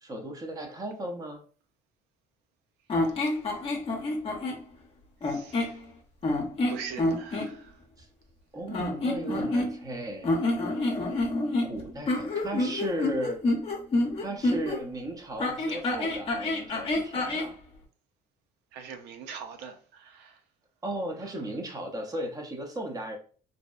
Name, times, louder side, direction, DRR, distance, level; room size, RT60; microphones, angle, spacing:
voice 1, 0.0-1.4 8.0-8.1 8.5-10.3 11.6-13.4 14.2-17.6 20.8-23.2, right 1 dB, 20° right, 0.6 m, -35 dB
sound 1, 2.9-4.6 5.2-5.8 6.2-7.5 8.7-9.9 10.2-14.8 15.4-17.5, left 2 dB, 35° left, 0.6 m, -28 dB
voice 2, 5.2-5.8 6.7-7.8 10.8-10.9 18.7-20.4 21.2-21.3, right 6 dB, 85° right, 0.4 m, -43 dB
2.6 x 2.0 x 2.3 m
cardioid pair, 110°, 17 cm